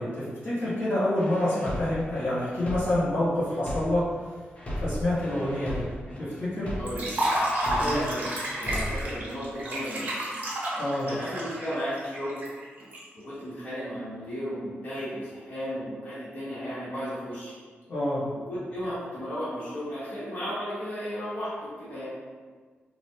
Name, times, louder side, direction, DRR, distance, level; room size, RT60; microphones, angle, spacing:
voice 1, 0.0-4.1 4.8-5.9 6.2-6.7 7.8-8.0 10.8-11.1 17.9-18.2, left 1 dB, 65° left, -10 dB, 1.3 m, -27 dB
sound 1, 1.2-4.2 4.6-8.2 8.6-9.2, equal, 30° left, 0.6 m, -35 dB
voice 2, 6.8-7.1 7.7-8.3 8.6-10.3 11.0-12.4 13.1-17.5 18.3-22.0, equal, 45° left, -12 dB, 1.1 m, -34 dB
Liquid, 6.9-13.0, right 1 dB, 40° right, 0.9 m, -30 dB
3.4 x 2.3 x 2.8 m, 1.5 s
wide cardioid pair, 150°, 4 cm